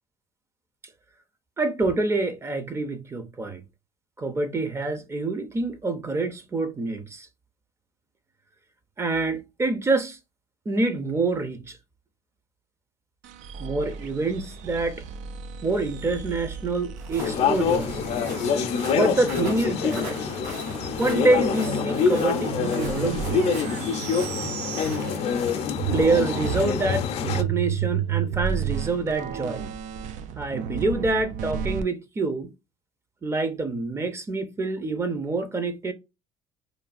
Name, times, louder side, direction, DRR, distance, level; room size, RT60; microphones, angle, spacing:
voice 1, 1.6-3.6 4.2-7.3 9.0-10.2 10.7-11.8 13.6-15.0 15.6-18.0 18.9-20.2 21.0-23.4 25.9-29.6 30.3-32.5 33.2-35.9, right 3 dB, 20° right, 0.6 m, -26 dB
sound 1, 13.2-25.5 25.8-31.8, right 9 dB, 65° right, 0.4 m, -33 dB
Walk footsteps, 17.0-26.0, right 4 dB, 85° right, 1.9 m, -42 dB
sound 2, 17.2-27.4, left 6 dB, 50° left, 0.5 m, -26 dB
3.1 x 2.2 x 2.4 m
cardioid pair, 120°, 13 cm